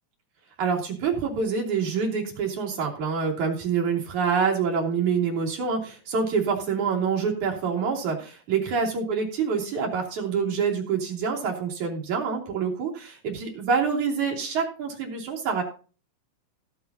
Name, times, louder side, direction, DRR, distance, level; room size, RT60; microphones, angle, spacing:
voice 1, 0.6-15.6, right 5 dB, 55° right, 0 dB, 4.3 m, -26 dB
16.5 x 9.2 x 2.8 m, 0.37 s
omnidirectional pair, 4.1 m